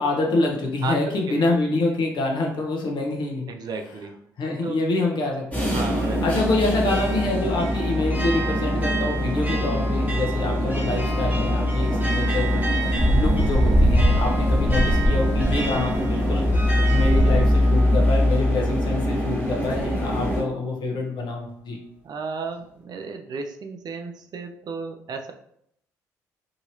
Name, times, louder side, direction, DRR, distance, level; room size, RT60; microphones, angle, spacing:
voice 1, 0.0-3.5 4.4-5.7 6.2-12.6 13.1-16.5 16.9-21.8, left 2 dB, 55° left, 0 dB, 0.9 m, -26 dB
voice 2, 0.8-1.3 3.5-4.2 4.6-4.8 5.6-6.2 22.0-25.3, right 4 dB, 50° right, 5 dB, 0.4 m, -33 dB
sound 1, 5.5-20.4, left 1 dB, 15° left, 1.3 m, -23 dB
sound 2, 6.0-19.0, right 3 dB, 15° right, 1.1 m, -34 dB
sound 3, 12.5-17.6, equal, 35° left, 1.5 m, -23 dB
2.8 x 2.7 x 2.9 m, 0.71 s
hypercardioid pair, 50°, 9 cm